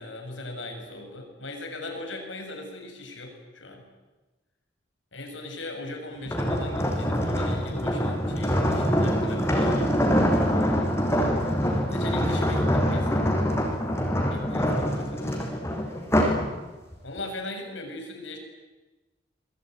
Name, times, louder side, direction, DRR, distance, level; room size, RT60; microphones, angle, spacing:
voice 1, 0.0-3.9 5.1-10.1 11.9-13.3 14.3-15.4 17.0-18.4, left 2 dB, 75° left, 4 dB, 7.1 m, -39 dB
sound 1, 6.3-16.5 16.9-17.2, equal, 15° left, 5.8 m, -24 dB
28.0 x 22.5 x 9.3 m, 1.2 s
head